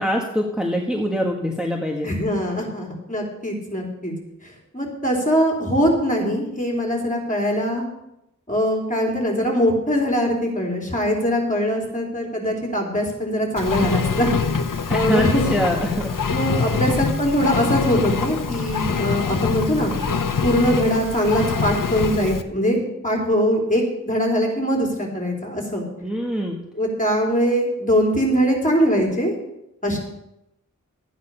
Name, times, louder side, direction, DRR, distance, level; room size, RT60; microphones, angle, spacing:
voice 1, 0.0-2.1 14.9-16.1 16.7-16.8 26.0-26.6, equal, 5° right, 0 dB, 1.4 m, -24 dB
voice 2, 2.0-4.1 4.7-7.9 8.5-15.4 16.3-19.9 20.4-25.9 26.8-29.3 29.8-30.0, equal, 25° left, 0 dB, 3.6 m, -22 dB
Engine, 13.6-22.4, left 5 dB, 90° left, 0.8 m, -24 dB
12.5 x 9.4 x 5.5 m, 0.85 s
wide cardioid pair, 60°, 31 cm